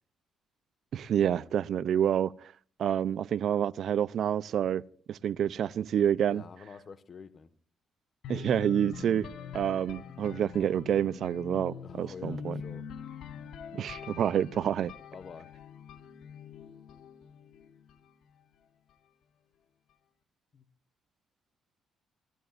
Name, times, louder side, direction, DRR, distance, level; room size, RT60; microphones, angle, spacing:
voice 1, 0.9-2.3 2.8-4.8 5.1-6.4 8.3-9.3 9.5-12.6 13.7-14.9, right 9 dB, 65° right, 0.6 m, -28 dB
voice 2, 6.3-7.5 11.8-12.9 15.1-15.5 20.5-20.7, left 6 dB, 45° left, 1.5 m, -47 dB
sound 1, 8.2-18.1, left 7 dB, 75° left, 1.5 m, -44 dB
25.5 x 16.5 x 2.6 m
cardioid pair, 90°, 0 cm